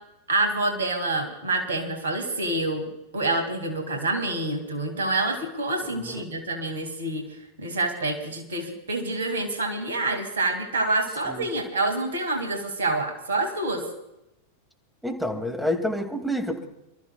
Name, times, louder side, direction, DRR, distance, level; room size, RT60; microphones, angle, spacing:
voice 1, 0.3-7.3 7.6-13.8, right 2 dB, 65° right, 4 dB, 2.4 m, -27 dB
voice 2, 15.0-16.7, equal, ahead, 3 dB, 2.3 m, -28 dB
28.5 x 14.0 x 2.3 m, 0.88 s
figure-of-eight pair, 90°, 0 cm